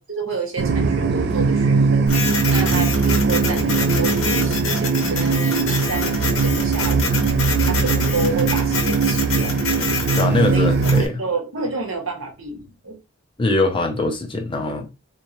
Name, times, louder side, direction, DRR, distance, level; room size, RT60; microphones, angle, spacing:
voice 1, 0.0-2.1 2.5-7.1 7.6-9.6 10.5-10.7 10.9-13.0, right 3 dB, 65° right, 1.4 m, -29 dB
sound 1, 0.6-11.0, right 4 dB, 50° right, 0.4 m, -20 dB
Printer, 2.1-11.1, left 4 dB, 65° left, 1.1 m, -27 dB
voice 2, 10.2-11.2 13.4-14.9, left 2 dB, 25° left, 0.5 m, -22 dB
3.7 x 3.0 x 3.0 m
head